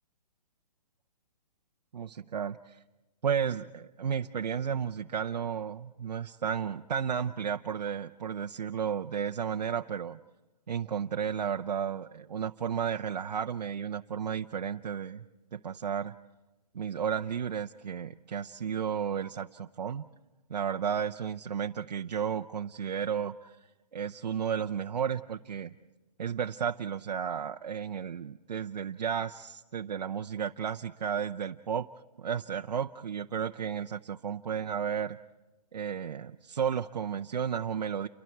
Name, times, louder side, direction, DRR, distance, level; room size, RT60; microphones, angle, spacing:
voice 1, 1.9-2.8 3.2-10.2 10.7-15.2 15.5-16.1 16.7-20.0 20.5-23.6 23.9-25.7 26.2-31.9 32.2-35.2 35.7-38.1, right 7 dB, 80° right, 5 dB, 0.8 m, -33 dB
29.5 x 24.0 x 4.6 m, 1.1 s
hypercardioid pair, 170°, 21 cm